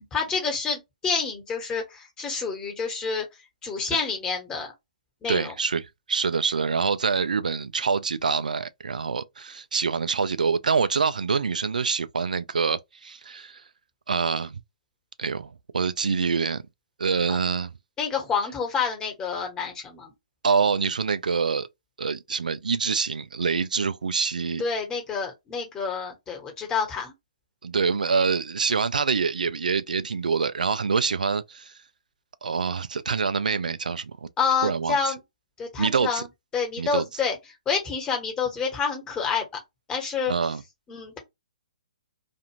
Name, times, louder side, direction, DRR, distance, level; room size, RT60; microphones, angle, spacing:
voice 1, 0.1-3.3 3.6-4.7 5.2-5.5 18.0-20.1 24.6-27.1 34.4-35.2 35.6-36.2 36.5-37.4 37.7-39.5 39.9-40.3 40.9-41.2, left 5 dB, 15° left, 1.2 m, -28 dB
voice 2, 5.3-13.6 14.1-14.6 15.2-16.6 17.0-17.7 20.4-21.7 22.0-24.6 27.6-31.7 32.4-34.3 34.6-35.1 35.8-36.2 36.8-37.0 40.3-40.6, right 5 dB, 80° right, 0.4 m, -26 dB
2.5 x 2.4 x 2.9 m
hypercardioid pair, 130°, 4 cm